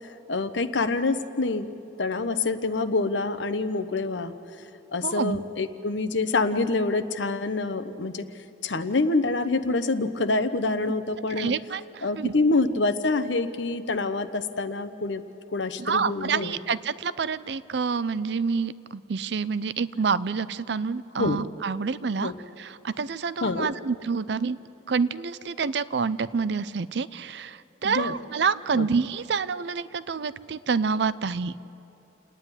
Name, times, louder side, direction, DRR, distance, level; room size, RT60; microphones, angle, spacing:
voice 1, 0.3-1.7 2.0-4.3 4.9-8.3 8.6-11.5 12.0-15.2 15.5-16.6 21.2-21.4 22.2-22.3 23.4-23.7 27.8-28.1 28.7-28.9, left 3 dB, 75° left, 11 dB, 0.9 m, -26 dB
voice 2, 5.0-5.4 11.3-12.3 15.8-22.3 22.6-24.6 24.9-31.5, right 5 dB, 65° right, 16 dB, 0.5 m, -28 dB
29.0 x 9.9 x 9.8 m, 2.8 s
head